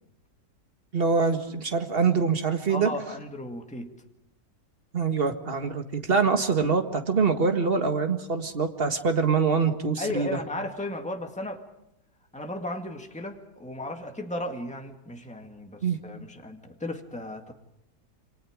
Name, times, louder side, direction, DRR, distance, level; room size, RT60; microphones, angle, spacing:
voice 1, 0.9-2.9 4.9-10.4 15.8-16.0, right 5 dB, 35° right, 6 dB, 1.9 m, -24 dB
voice 2, 2.7-3.9 10.0-11.6 12.3-17.5, left 1 dB, 5° left, 3 dB, 1.9 m, -35 dB
28.5 x 25.5 x 5.0 m, 0.82 s
omnidirectional pair, 1.8 m